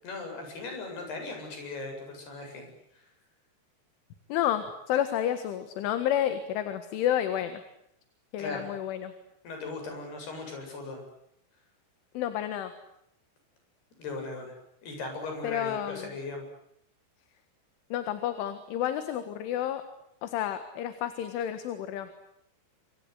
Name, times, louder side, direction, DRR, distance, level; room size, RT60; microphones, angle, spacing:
voice 1, 0.0-3.1 8.4-8.7 9.4-11.0 14.0-14.6 14.8-16.5, left 3 dB, 50° left, 4 dB, 9.6 m, -38 dB
voice 2, 4.3-7.6 8.3-9.1 12.2-12.7 15.4-16.1 17.9-19.9 20.2-22.1, left 11 dB, 75° left, 10 dB, 4.0 m, -30 dB
27.5 x 26.0 x 8.2 m, 0.76 s
omnidirectional pair, 5.9 m